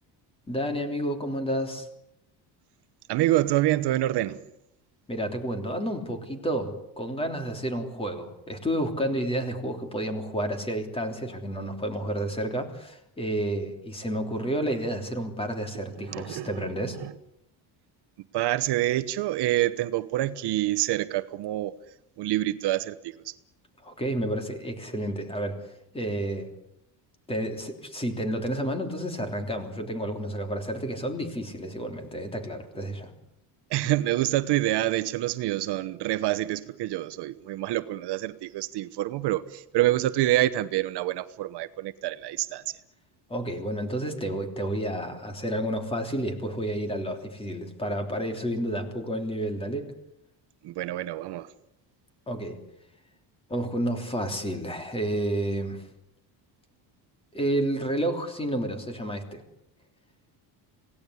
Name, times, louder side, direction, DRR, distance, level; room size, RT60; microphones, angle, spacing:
voice 1, 0.5-1.9 5.1-17.0 23.8-26.5 27.3-33.1 43.3-49.9 52.3-52.6 53.5-55.9 57.3-59.4, right 1 dB, 10° left, 3.3 m, -30 dB
voice 2, 3.1-4.4 16.1-16.5 17.0-17.1 18.3-21.7 22.2-23.1 33.7-42.6 50.6-51.5, right 15 dB, 65° right, 1.1 m, -26 dB
27.0 x 18.0 x 9.9 m
cardioid pair, 170°, 44 cm